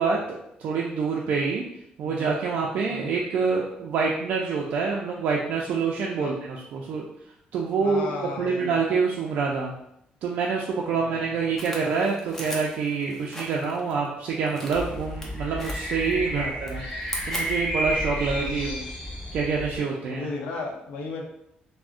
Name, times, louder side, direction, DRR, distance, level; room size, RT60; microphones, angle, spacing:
voice 1, 0.0-1.6 2.0-7.1 7.5-8.1 8.4-9.7 10.2-16.8 17.3-18.7 19.3-20.3, right 5 dB, 60° right, -2 dB, 0.3 m, -26 dB
voice 2, 2.0-2.4 2.9-3.1 6.2-6.3 7.8-8.9 10.9-11.5 16.1-16.6 18.2-18.9 19.8-21.3, left 3 dB, 80° left, 0 dB, 0.6 m, -36 dB
sound 1, 11.6-13.9 14.5-15.3 15.6-16.3 16.6-17.8, equal, 10° left, 0.4 m, -38 dB
sound 2, 14.7-19.8, equal, 40° left, 1.4 m, -31 dB
3.5 x 2.0 x 2.4 m, 0.78 s
cardioid pair, 180°, 3 cm